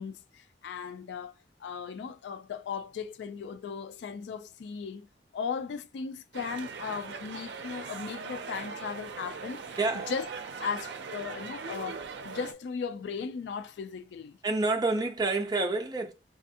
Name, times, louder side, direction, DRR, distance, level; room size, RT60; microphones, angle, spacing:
voice 1, 0.0-1.3 1.6-5.1 5.3-9.8 10.1-10.3 10.6-14.4, left 6 dB, 75° left, 0.3 m, -37 dB
sound 1, 6.3-12.5, right 5 dB, 75° right, 0.5 m, -40 dB
voice 2, 9.8-10.1 14.4-16.1, right 3 dB, 25° right, 0.5 m, -28 dB
3.3 x 2.3 x 2.7 m
head